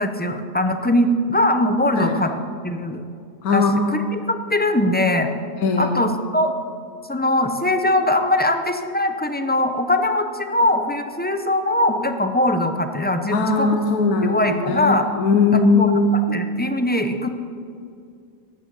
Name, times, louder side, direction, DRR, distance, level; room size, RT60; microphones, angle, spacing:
voice 1, 0.0-2.3 2.6-3.0 3.5-5.3 5.8-6.5 7.1-13.8 14.2-15.1 15.5-17.3, left 1 dB, 10° left, 7 dB, 0.5 m, -21 dB
voice 2, 3.4-3.8 5.6-6.0 13.3-16.4, left 3 dB, 90° left, 4 dB, 1.4 m, -19 dB
14.5 x 12.5 x 5.5 m, 2.4 s
omnidirectional pair, 1.5 m